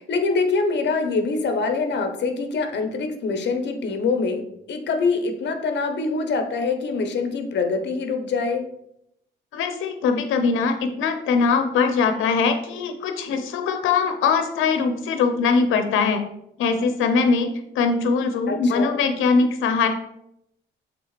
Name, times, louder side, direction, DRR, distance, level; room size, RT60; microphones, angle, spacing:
voice 1, 0.0-8.6 18.5-19.0, left 4 dB, 60° left, 6 dB, 1.2 m, -24 dB
voice 2, 9.5-16.2 16.6-19.9, left 5 dB, 90° left, 7 dB, 0.9 m, -21 dB
7.4 x 3.8 x 4.2 m, 0.76 s
cardioid pair, 90°, 20 cm